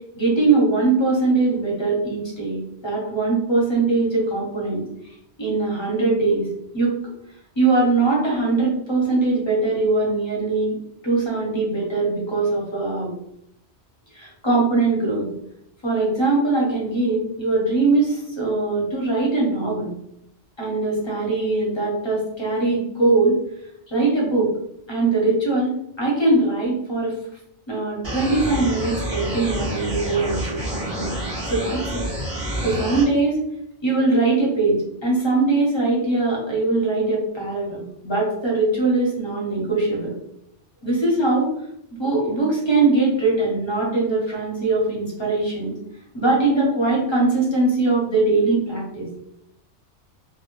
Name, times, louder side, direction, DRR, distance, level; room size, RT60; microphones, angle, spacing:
voice 1, 0.2-4.8 5.4-6.4 6.7-6.9 7.6-10.8 11.0-13.1 14.1-15.3 15.8-19.9 20.6-23.3 23.9-24.5 24.9-27.1 27.7-31.2 31.4-32.0 32.6-33.4 33.8-40.2 40.8-41.5 41.9-45.7 46.1-49.1, right 3 dB, 30° left, -3 dB, 0.7 m, -21 dB
sound 1, 28.0-33.0, right 1 dB, 30° right, 0.6 m, -28 dB
2.2 x 2.1 x 3.0 m, 0.76 s
omnidirectional pair, 1.1 m